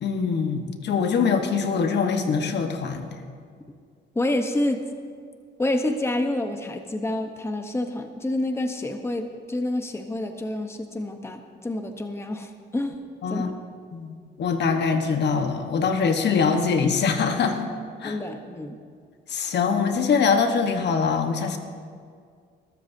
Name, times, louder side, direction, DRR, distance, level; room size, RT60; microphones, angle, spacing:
voice 1, 0.0-3.1 13.2-13.5 13.9-17.7 18.0-18.2 19.3-21.6, left 5 dB, 60° left, 5 dB, 1.3 m, -23 dB
voice 2, 4.1-4.8 5.6-13.0 13.3-13.5 18.0-18.8, left 1 dB, 15° left, 6 dB, 1.0 m, -28 dB
21.5 x 13.0 x 2.7 m, 2.1 s
cardioid pair, 90°, 20 cm